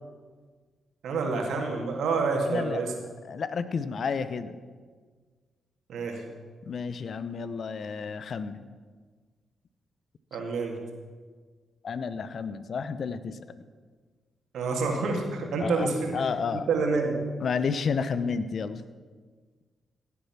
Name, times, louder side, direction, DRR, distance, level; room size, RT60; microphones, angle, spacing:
voice 1, 1.0-2.9 5.9-6.2 10.3-10.8 14.5-16.1 16.7-17.1, right 4 dB, 70° right, 1 dB, 2.3 m, -28 dB
voice 2, 2.4-2.8 3.2-4.6 6.6-8.7 11.8-13.4 15.6-16.7 17.4-18.8, left 5 dB, 60° left, 13 dB, 0.8 m, -31 dB
16.5 x 8.3 x 6.0 m, 1.5 s
hypercardioid pair, 40°, 0 cm